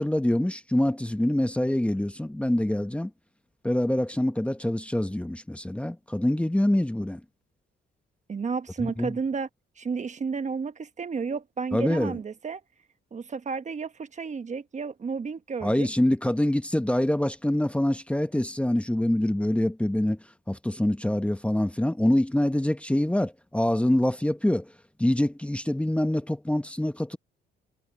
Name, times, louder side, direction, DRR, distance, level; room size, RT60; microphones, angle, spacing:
voice 1, 0.0-3.1 3.6-7.2 8.8-9.1 11.7-12.1 15.6-20.2 20.5-24.6 25.0-27.2, left 1 dB, 5° left, 1.1 m, -25 dB
voice 2, 8.3-9.5 9.8-12.6 13.1-15.9, right 5 dB, 35° right, 1.1 m, -32 dB
cardioid pair, 90°, 20 cm